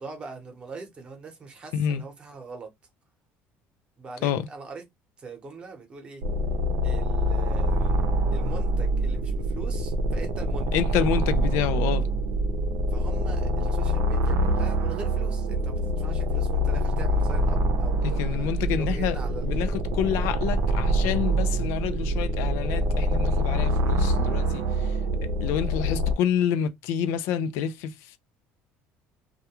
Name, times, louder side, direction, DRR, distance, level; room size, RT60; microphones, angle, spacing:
voice 1, 0.0-2.7 4.0-4.8 5.2-6.2 6.8-8.0 8.3-10.8 12.9-19.5, right 4 dB, 25° right, 0.8 m, -42 dB
voice 2, 1.7-2.0 4.2-4.5 10.7-12.1 18.2-19.2 19.4-25.0 25.4-28.2, left 9 dB, 75° left, 0.3 m, -28 dB
sound 1, 6.2-26.1, equal, 75° right, 0.6 m, -25 dB
2.3 x 2.2 x 2.8 m
cardioid pair, 160°, 5 cm